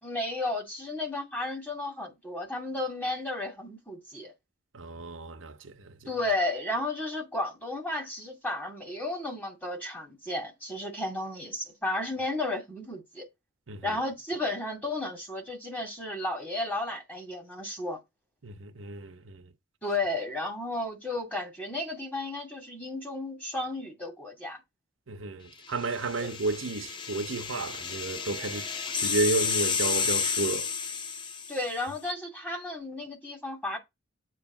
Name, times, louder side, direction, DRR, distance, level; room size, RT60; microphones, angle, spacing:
voice 1, 0.0-4.3 6.1-13.3 13.8-18.0 19.8-24.6 26.2-26.3 31.5-33.8, left 2 dB, 10° left, 2.4 m, -33 dB
voice 2, 4.7-6.0 13.7-14.0 18.4-19.4 25.1-30.7, right 3 dB, 90° right, 1.0 m, -32 dB
sound 1, 25.8-31.8, left 6 dB, 25° left, 0.8 m, -31 dB
7.8 x 3.3 x 6.0 m
head